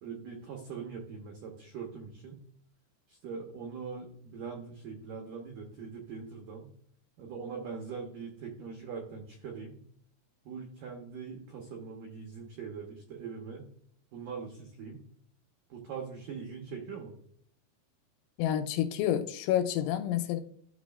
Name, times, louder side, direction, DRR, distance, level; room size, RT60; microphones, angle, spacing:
voice 1, 0.0-2.4 3.1-6.7 7.2-9.8 10.5-13.7 14.1-15.0 15.7-17.1, right 5 dB, 85° right, 1.9 m, -42 dB
voice 2, 18.4-20.4, left 11 dB, 85° left, 3.0 m, -29 dB
12.5 x 6.0 x 2.4 m
omnidirectional pair, 5.4 m